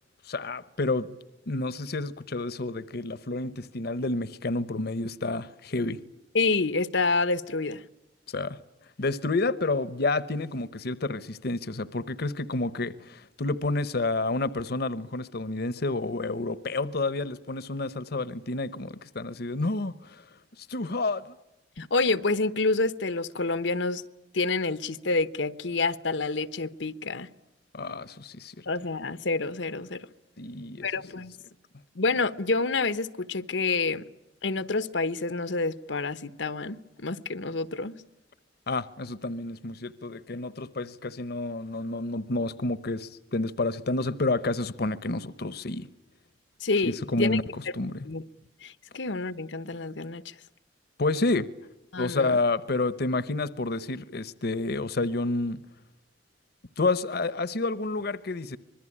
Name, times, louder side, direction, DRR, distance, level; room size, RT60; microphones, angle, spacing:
voice 1, 0.2-1.2 1.5-6.0 8.3-8.6 9.0-20.2 20.6-21.3 21.8-21.9 27.7-28.7 30.4-30.9 38.7-45.9 46.8-48.1 51.0-51.5 52.0-55.6 56.8-58.6, left 2 dB, 60° left, 0.9 m, -29 dB
voice 2, 6.3-7.8 21.8-24.0 24.3-27.3 28.7-30.0 30.8-31.3 31.9-34.0 34.4-37.9 46.6-47.4 48.0-48.2 48.6-50.3 51.9-52.4, left 3 dB, 90° left, 1.1 m, -28 dB
26.0 x 21.5 x 10.0 m
head